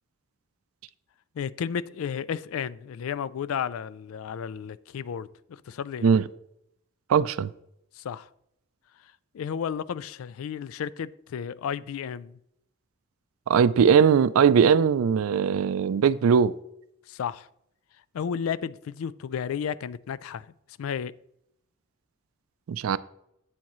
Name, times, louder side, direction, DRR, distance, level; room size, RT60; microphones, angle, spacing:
voice 1, 1.4-6.1 8.0-8.3 9.3-12.4 17.1-17.5 18.1-20.5 20.8-21.1, left 7 dB, 90° left, 0.3 m, -33 dB
voice 2, 7.1-7.5 13.5-16.5 22.7-23.0, right 7 dB, 90° right, 0.3 m, -20 dB
8.5 x 7.1 x 3.0 m
head